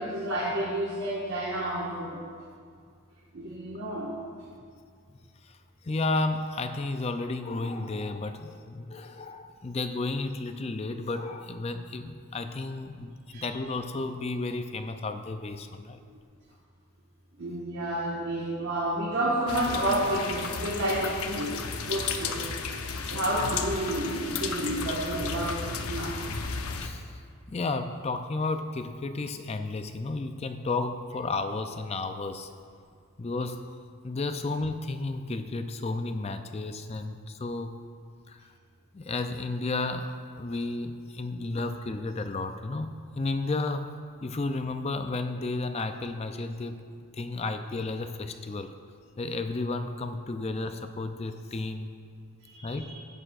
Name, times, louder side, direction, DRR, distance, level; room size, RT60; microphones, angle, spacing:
voice 1, 0.0-2.2 3.3-4.1 13.3-13.4 17.4-22.4 23.1-26.2 41.4-41.5 52.4-53.0, right 1 dB, 60° right, -6 dB, 1.5 m, -30 dB
voice 2, 5.8-16.0 23.4-23.5 26.8-27.2 27.5-32.5 33.2-33.7 34.0-37.8 38.3-38.5 38.9-43.9 44.2-46.8 47.1-48.7 49.2-51.9 52.6-53.0, left 3 dB, 25° left, 8 dB, 0.4 m, -32 dB
sound 1, 19.5-26.9, left 5 dB, 75° left, 0.7 m, -34 dB
16.0 x 10.0 x 2.5 m, 2.1 s
head